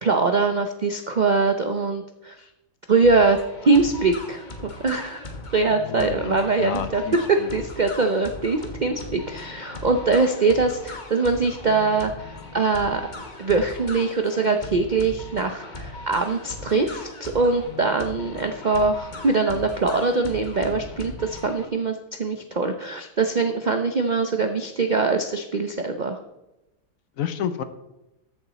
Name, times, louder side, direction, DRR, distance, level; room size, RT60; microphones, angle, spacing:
voice 1, 0.0-2.4 2.9-3.4 3.7-4.4 4.8-5.3 5.5-7.0 7.3-13.0 13.4-26.2, right 3 dB, 90° right, 6 dB, 0.4 m, -22 dB
sound 1, 3.0-21.7, left 2 dB, 30° left, 1.3 m, -39 dB
voice 2, 5.8-7.5 27.2-27.6, left 9 dB, 65° left, 11 dB, 1.0 m, -30 dB
13.5 x 7.1 x 4.1 m, 0.95 s
omnidirectional pair, 1.8 m